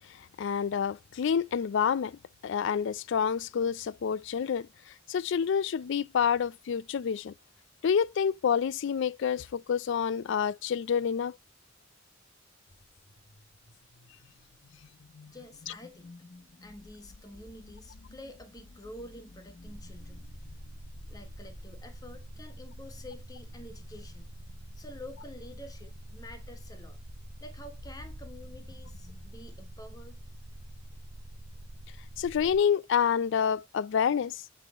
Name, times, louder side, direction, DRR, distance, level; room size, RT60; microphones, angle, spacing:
voice 1, 0.4-4.7 5.1-7.3 7.8-11.3 32.2-34.4, left 7 dB, 65° left, 0.4 m, -28 dB
sound 1, 12.7-29.3, left 3 dB, 50° left, 0.9 m, -54 dB
voice 2, 15.3-16.2 16.6-20.3 21.1-24.3 24.7-27.0 27.4-30.2, left 1 dB, 20° left, 1.2 m, -48 dB
sound 2, 19.6-32.6, right 1 dB, 60° right, 0.9 m, -46 dB
8.4 x 5.7 x 4.0 m
head